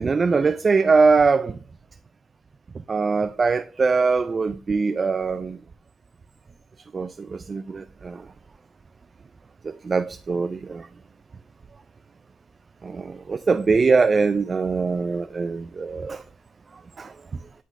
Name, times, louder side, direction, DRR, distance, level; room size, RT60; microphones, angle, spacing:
voice 1, 0.0-1.6 2.9-5.6 6.9-8.2 9.8-10.9 12.8-16.2 17.0-17.1, right 4 dB, 30° right, 0.3 m, -22 dB
10.0 x 4.0 x 3.5 m
cardioid pair, 140°, 0 cm